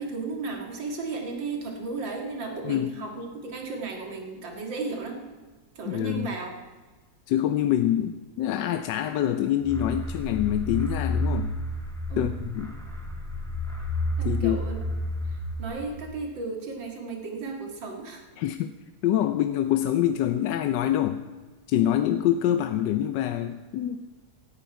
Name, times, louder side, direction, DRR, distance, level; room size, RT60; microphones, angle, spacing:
voice 1, 0.0-5.2 5.8-6.5 12.1-12.3 14.2-14.8 15.2-18.3, right 4 dB, 65° right, 2 dB, 2.7 m, -34 dB
voice 2, 2.6-3.0 5.9-6.3 7.3-11.5 12.2-12.7 14.2-14.6 18.4-18.7 19.0-21.2 21.7-24.0, left 11 dB, 70° left, 9 dB, 1.1 m, -25 dB
sound 1, 9.6-16.2, left 1 dB, ahead, 2.2 m, -31 dB
17.0 x 12.5 x 4.7 m, 1.3 s
omnidirectional pair, 2.2 m